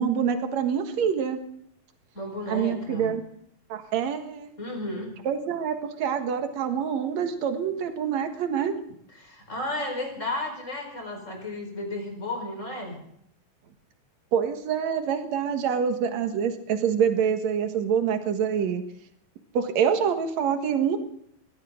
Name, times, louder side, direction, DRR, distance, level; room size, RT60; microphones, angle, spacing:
voice 1, 0.0-1.4 2.5-3.2 3.7-4.5 5.3-8.7 14.3-18.8 19.5-21.0, right 7 dB, 65° right, 6 dB, 2.8 m, -26 dB
voice 2, 2.1-3.1 4.6-5.1 9.1-13.0, left 2 dB, 20° left, 3 dB, 5.0 m, -33 dB
22.0 x 16.0 x 3.9 m, 0.70 s
omnidirectional pair, 3.5 m